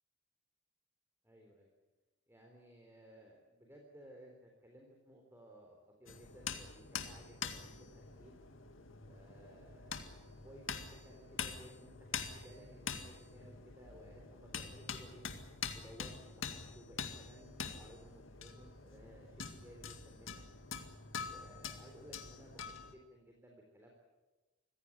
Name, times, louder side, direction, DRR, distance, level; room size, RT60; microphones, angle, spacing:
voice 1, 1.2-1.7 2.3-8.3 9.1-15.3 15.7-20.4 21.2-23.9, equal, 10° right, 0 dB, 3.6 m, -58 dB
sound 1, 6.1-22.9, left 6 dB, 75° left, 2.1 m, -45 dB
25.0 x 16.0 x 10.0 m, 1.2 s
head